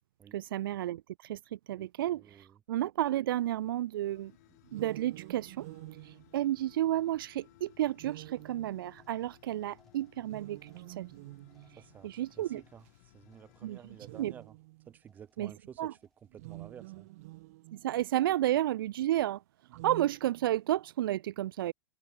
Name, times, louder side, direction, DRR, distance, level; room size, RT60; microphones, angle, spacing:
voice 1, 0.3-4.3 4.7-11.2 11.6-12.6 13.6-13.8 14.2-14.3 15.4-15.5 15.8-15.9 17.7-21.7, right 13 dB, 60° right, 0.4 m, -32 dB
voice 2, 1.8-2.6 11.8-14.5 14.8-16.0 16.3-17.1, right 8 dB, 15° right, 1.5 m, -52 dB
sound 1, 4.0-14.2, left 21 dB, 40° left, 4.3 m, -62 dB
sound 2, 4.6-7.1 8.0-9.2 10.2-12.0 12.9-13.0 13.9-15.0 16.3-18.1 19.6-20.9, right 21 dB, 40° right, 0.9 m, -48 dB
sound 3, 9.0-14.8 15.0-15.6 15.9-16.5 16.8-17.3 17.7-18.2, left 2 dB, 5° left, 4.7 m, -73 dB
supercardioid pair, 170°, 13 cm